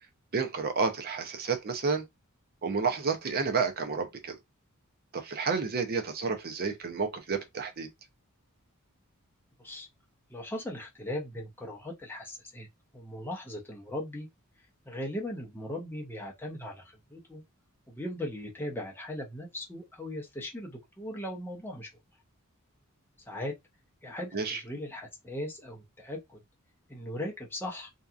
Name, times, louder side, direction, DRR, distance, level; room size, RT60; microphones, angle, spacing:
voice 1, 0.3-2.1 2.6-4.4 5.1-7.9 24.3-24.6, right 5 dB, 45° right, 0.6 m, -30 dB
voice 2, 10.3-12.7 12.9-14.3 14.9-17.4 17.9-21.9 23.3-23.5 24.0-26.4 26.9-27.9, left 1 dB, 10° left, 0.7 m, -38 dB
2.8 x 2.3 x 2.4 m
head